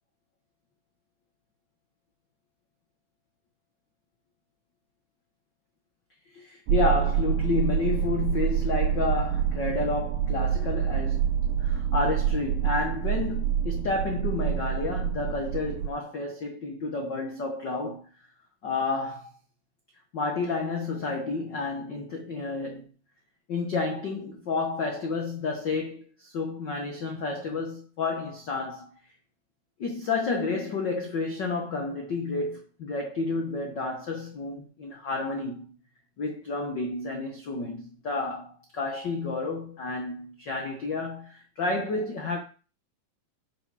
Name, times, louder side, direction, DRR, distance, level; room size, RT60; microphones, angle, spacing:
voice 1, 6.3-11.3 11.6-18.1 18.6-19.3 20.1-22.9 23.5-28.9 29.8-35.7 36.2-42.4, left 3 dB, 80° left, 1.0 m, -30 dB
sound 1, 6.7-15.9, right 9 dB, 80° right, 1.9 m, -27 dB
11.0 x 4.9 x 4.8 m
omnidirectional pair, 4.0 m